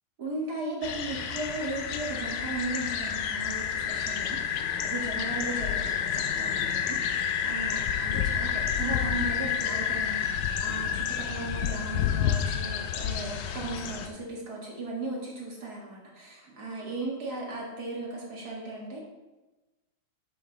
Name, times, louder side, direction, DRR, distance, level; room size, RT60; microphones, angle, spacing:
voice 1, 0.2-19.0, right 2 dB, 45° right, -3 dB, 1.3 m, -37 dB
sound 1, 0.8-14.1, left 8 dB, 80° left, 1.8 m, -29 dB
8.9 x 8.2 x 4.0 m, 1.1 s
omnidirectional pair, 4.4 m